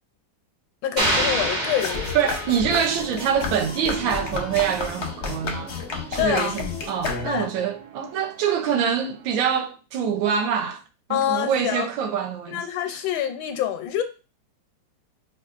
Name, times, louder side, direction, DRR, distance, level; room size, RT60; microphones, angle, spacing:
voice 1, 0.8-2.4 6.2-6.6 7.3-7.5 11.1-11.9 12.5-14.0, left 10 dB, 85° left, 1.3 m, -26 dB
sound 1, 1.0-3.1, right 1 dB, 45° right, 0.6 m, -26 dB
sound 2, 1.8-7.6, left 5 dB, 60° left, 0.7 m, -32 dB
voice 2, 2.1-5.7 6.1-10.8 11.1-12.6 12.9-13.0, right 8 dB, 85° right, 1.4 m, -25 dB
sound 3, 2.5-9.3, right 6 dB, 65° right, 1.1 m, -42 dB
5.2 x 2.4 x 2.4 m
omnidirectional pair, 2.1 m